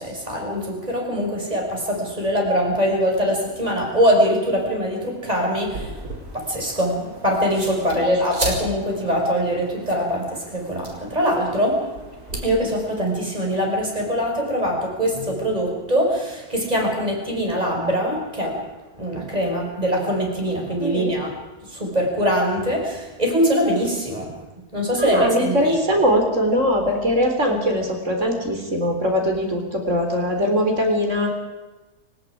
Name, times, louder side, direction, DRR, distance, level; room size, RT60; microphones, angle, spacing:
voice 1, 0.0-6.0 6.3-12.0 12.3-18.6 18.9-21.3 21.7-24.4 24.7-25.8, equal, 25° right, 0 dB, 5.7 m, -23 dB
sound 1, 5.5-12.4, right 1 dB, 80° right, 5.1 m, -35 dB
voice 2, 20.8-21.2 25.0-31.4, equal, 55° right, 3 dB, 4.0 m, -21 dB
29.5 x 17.5 x 5.0 m, 1.2 s
omnidirectional pair, 1.6 m